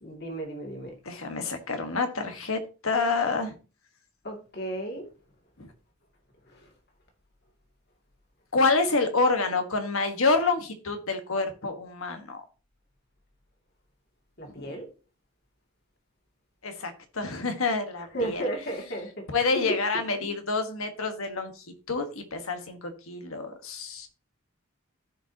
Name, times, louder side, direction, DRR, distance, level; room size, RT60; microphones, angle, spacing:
voice 1, 0.0-0.9 4.2-5.1 14.4-14.9 18.1-19.1 19.5-19.7 20.2-20.3, right 1 dB, 45° left, 2.5 m, -33 dB
voice 2, 1.0-3.6 5.6-5.7 8.5-12.4 14.5-14.8 16.6-18.4 19.3-24.1, left 3 dB, 75° left, 1.5 m, -28 dB
14.5 x 5.2 x 2.9 m
head